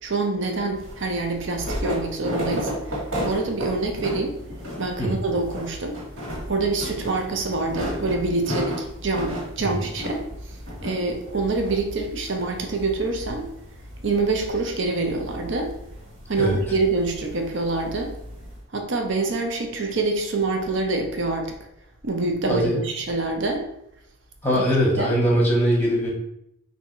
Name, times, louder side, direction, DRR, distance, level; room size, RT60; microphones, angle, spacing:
voice 1, 0.0-4.4 4.8-6.0 6.5-10.2 10.8-13.5 14.0-15.7 16.3-18.1 18.7-21.5 22.0-23.7 24.5-24.6 25.0-25.2, right 3 dB, 60° right, 3 dB, 0.7 m, -26 dB
sound 1, 0.7-18.6, equal, 80° right, 1.6 m, -34 dB
voice 2, 22.5-22.8 24.4-26.1, equal, 10° left, -2 dB, 0.9 m, -21 dB
3.5 x 2.7 x 4.2 m, 0.78 s
head